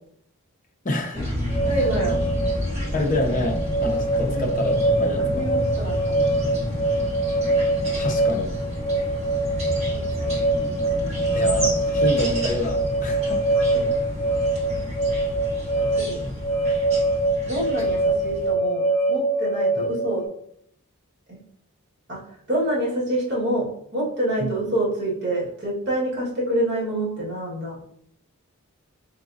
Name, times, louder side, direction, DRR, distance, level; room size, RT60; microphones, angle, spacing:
voice 1, 0.8-1.3 2.9-5.5 8.0-8.6 11.3-13.5, left 1 dB, 35° left, 2 dB, 0.5 m, -27 dB
sound 1, 1.1-18.5, equal, 30° right, 1.2 m, -30 dB
sound 2, 1.5-20.3, right 2 dB, 5° left, 0.8 m, -24 dB
voice 2, 1.6-2.2 4.3-4.4 5.3-6.5 9.9-10.4 13.7-13.8 15.7-16.2 17.4-20.2 21.3-21.4 22.1-22.2 22.5-23.7 23.9-27.8, right 1 dB, 50° right, -6 dB, 1.5 m, -27 dB
3.9 x 3.6 x 2.5 m, 0.69 s
head